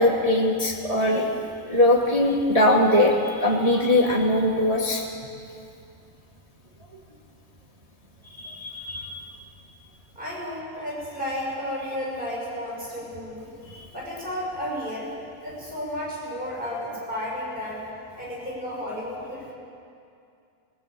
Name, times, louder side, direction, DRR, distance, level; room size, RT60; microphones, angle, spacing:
voice 1, 0.0-1.4 1.7-5.0 8.3-9.2 13.7-13.8, left 1 dB, 40° right, -1 dB, 0.5 m, -21 dB
voice 2, 10.1-13.5 13.9-15.1 15.4-17.8 18.1-19.5, equal, 15° right, -5 dB, 6.4 m, -32 dB
19.5 x 16.5 x 8.4 m, 2.5 s
omnidirectional pair, 3.8 m